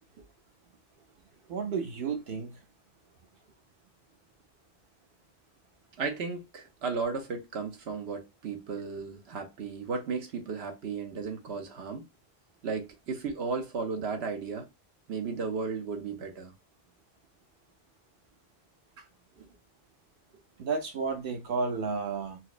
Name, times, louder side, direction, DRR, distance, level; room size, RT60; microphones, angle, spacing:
voice 1, 1.5-2.6 20.6-22.4, right 4 dB, 60° right, 0.8 m, -32 dB
voice 2, 6.0-12.1 12.6-14.7 15.1-16.5 19.4-19.5, right 5 dB, 80° right, 1.1 m, -35 dB
4.3 x 2.0 x 2.4 m
omnidirectional pair, 1.1 m